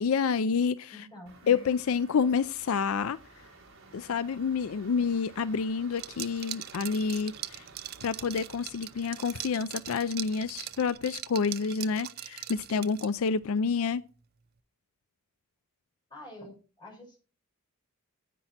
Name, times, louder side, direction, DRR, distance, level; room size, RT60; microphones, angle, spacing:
voice 1, 0.0-0.9 1.5-3.2 3.9-7.7 8.0-14.0, left 5 dB, 70° left, 0.4 m, -28 dB
voice 2, 0.9-1.7 16.1-17.2, left 1 dB, 20° left, 5.4 m, -47 dB
sound 1, 1.3-10.9, right 3 dB, 65° right, 4.0 m, -54 dB
Liquid, 5.9-13.3, right 13 dB, 45° right, 0.5 m, -41 dB
10.0 x 8.8 x 4.2 m
head